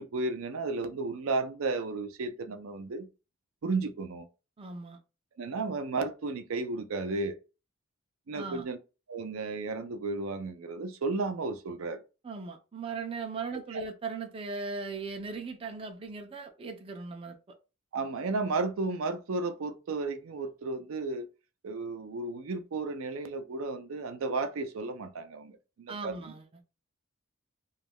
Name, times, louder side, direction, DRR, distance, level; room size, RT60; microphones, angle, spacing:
voice 1, 0.0-3.1 3.6-4.3 5.4-7.4 8.3-8.8 9.1-12.0 13.7-13.8 17.9-21.3 21.6-26.1, right 3 dB, 85° right, 0.5 m, -33 dB
voice 2, 4.6-5.0 8.3-8.6 12.2-17.4 25.9-26.5, right 4 dB, 25° right, 0.4 m, -38 dB
2.3 x 2.1 x 3.4 m
head